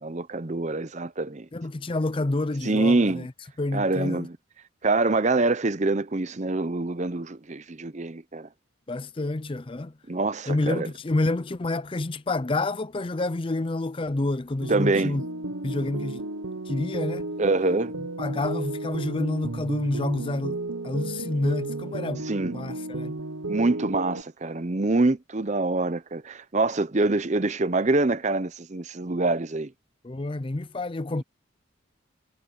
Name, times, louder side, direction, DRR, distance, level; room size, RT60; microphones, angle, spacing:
voice 1, 0.0-1.5 2.6-3.3 3.7-4.4 4.8-8.5 10.1-10.9 14.7-15.2 17.4-17.9 22.3-22.5 23.5-29.7, right 2 dB, 35° right, 0.7 m, -25 dB
voice 2, 1.5-3.3 3.6-4.3 8.9-9.9 10.5-15.2 15.6-16.2 16.7-17.3 18.2-20.6 20.8-22.3 22.5-23.2 30.0-31.2, left 2 dB, 25° left, 0.5 m, -28 dB
sound 1, 14.6-24.2, right 2 dB, 85° right, 1.1 m, -33 dB
head